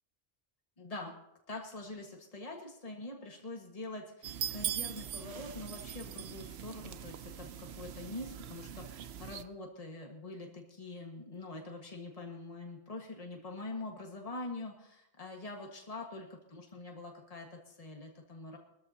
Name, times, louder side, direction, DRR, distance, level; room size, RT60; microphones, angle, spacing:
voice 1, 0.8-1.1 1.5-18.6, left 2 dB, 35° left, 1 dB, 1.7 m, -44 dB
sound 1, 4.2-9.4, right 10 dB, 85° right, 0.9 m, -41 dB
22.0 x 13.5 x 2.8 m, 0.83 s
omnidirectional pair, 1.0 m